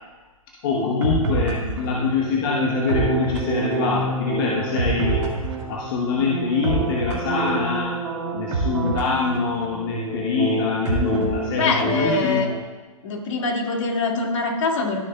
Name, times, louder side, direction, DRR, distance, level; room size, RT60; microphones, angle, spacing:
voice 1, 0.6-5.2 5.7-8.0 8.3-12.5, left 5 dB, 40° left, -2 dB, 1.1 m, -24 dB
sound 1, 0.7-12.6, right 3 dB, 50° right, 2.0 m, -26 dB
voice 2, 11.5-12.5 13.0-15.0, left 3 dB, 55° left, 1 dB, 2.2 m, -23 dB
14.5 x 6.3 x 2.3 m, 1.3 s
figure-of-eight pair, 130°, 19 cm